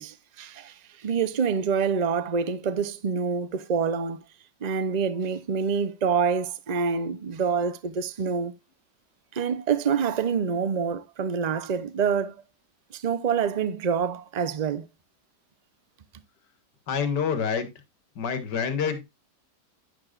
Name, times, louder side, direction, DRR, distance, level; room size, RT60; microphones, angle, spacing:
voice 1, 0.0-4.2 4.6-8.5 9.3-12.4 12.9-14.9, right 6 dB, 45° right, 0.6 m, -26 dB
voice 2, 16.9-17.7 18.2-19.1, left 6 dB, 80° left, 2.1 m, -27 dB
10.5 x 9.4 x 2.5 m
omnidirectional pair, 1.8 m